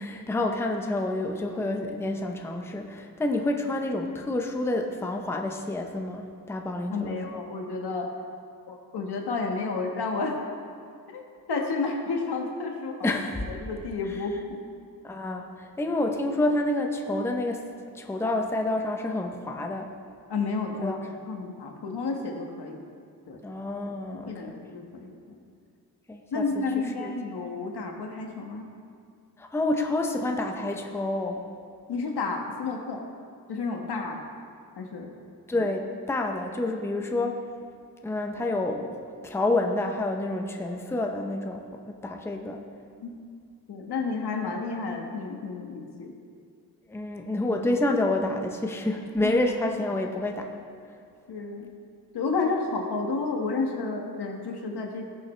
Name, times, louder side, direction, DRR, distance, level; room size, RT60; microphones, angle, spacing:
voice 1, 0.0-7.4 13.0-13.4 15.0-17.7 17.9-19.9 20.8-21.0 23.4-24.6 26.1-27.1 29.4-31.5 35.5-37.4 38.0-39.0 39.2-42.6 46.9-50.5, left 2 dB, 5° left, 3 dB, 0.6 m, -28 dB
voice 2, 6.9-8.1 8.7-10.4 11.1-11.2 11.5-13.1 13.5-14.7 20.3-20.9 21.3-22.8 23.3-23.4 24.2-25.2 26.3-28.7 31.9-33.0 33.5-34.2 34.8-35.1 43.0-43.1 43.7-46.1 49.2-49.3 51.3-51.7 52.1-55.0, left 4 dB, 90° left, 2 dB, 1.4 m, -31 dB
18.0 x 6.8 x 3.2 m, 2.2 s
wide cardioid pair, 170°, 38 cm